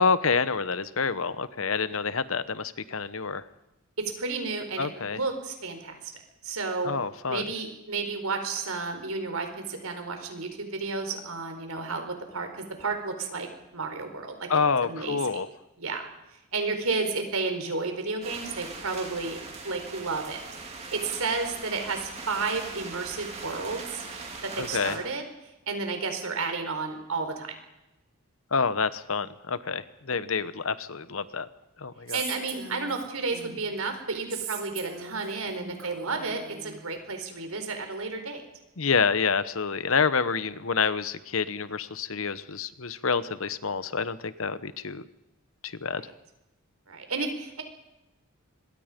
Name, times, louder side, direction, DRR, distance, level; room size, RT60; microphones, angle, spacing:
voice 1, 0.0-3.4 4.8-5.2 6.8-7.4 14.5-15.5 24.6-25.0 28.5-31.5 31.8-32.2 38.8-45.0 45.6-46.1, left 5 dB, 65° left, 14 dB, 1.0 m, -28 dB
voice 2, 4.0-6.9 7.3-13.5 13.7-14.5 14.8-15.2 15.8-16.1 16.5-19.4 19.6-20.4 20.9-24.0 24.6-25.2 25.7-27.5 32.1-38.4 45.9-46.0 46.9-47.6, right 4 dB, 80° right, 6 dB, 4.6 m, -32 dB
sound 1, 18.2-25.0, right 3 dB, 30° right, 3.9 m, -40 dB
Female speech woman speaking, 32.1-33.8 34.3-36.8, right 6 dB, 65° right, 4.0 m, -40 dB
25.5 x 22.0 x 5.3 m, 0.96 s
head